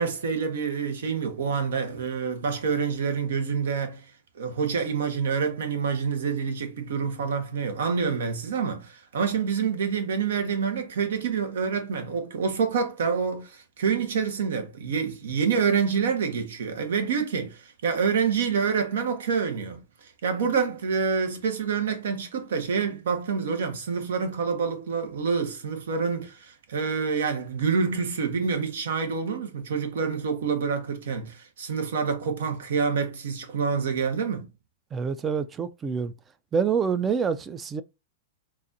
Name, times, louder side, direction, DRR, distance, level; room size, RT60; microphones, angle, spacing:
voice 1, 0.0-34.5, right 6 dB, 80° right, 1.0 m, -27 dB
voice 2, 34.9-36.1 36.5-37.8, right 6 dB, 20° right, 0.3 m, -26 dB
4.0 x 2.5 x 2.6 m
hypercardioid pair, 135°, 0 cm